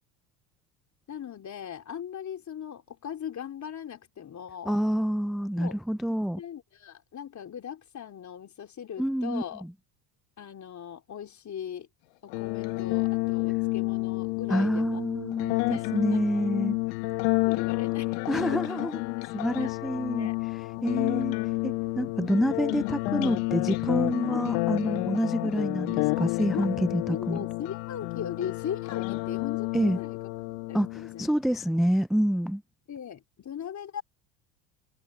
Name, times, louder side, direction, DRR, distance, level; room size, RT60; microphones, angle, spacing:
voice 1, 1.1-4.8 5.6-5.8 6.4-9.7 10.4-11.9 12.2-15.0 15.7-16.5 17.2-18.8 19.6-19.7 20.2-20.4 24.3-24.4 25.4-25.5 25.9-26.7 27.1-30.2 30.7-31.3 32.9-34.0, left 9 dB, 35° left, 3.8 m, -39 dB
voice 2, 4.7-6.4 9.0-9.4 14.5-16.8 18.3-19.0 19.3-21.4 21.6-27.4 29.7-30.0 30.7-32.6, equal, ahead, 0.3 m, -28 dB
sound 1, 12.3-31.3, left 26 dB, 75° left, 1.6 m, -30 dB
supercardioid pair, 90°, 48 cm